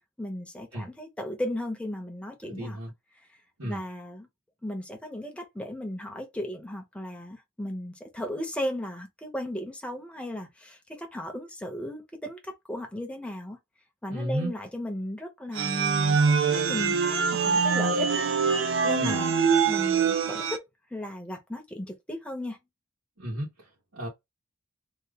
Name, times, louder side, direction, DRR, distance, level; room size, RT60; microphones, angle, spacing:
voice 1, 0.2-2.8 3.6-4.3 4.6-13.6 14.0-18.3 18.8-19.3 19.7-20.7 20.9-22.6, left 1 dB, 5° left, 0.8 m, -36 dB
voice 2, 2.4-2.9 3.6-3.8 14.1-14.5 19.0-19.2 23.2-24.1, right 1 dB, 85° right, 1.4 m, -33 dB
sound 1, 15.5-20.6, right 5 dB, 60° right, 0.6 m, -24 dB
2.9 x 2.4 x 3.4 m
head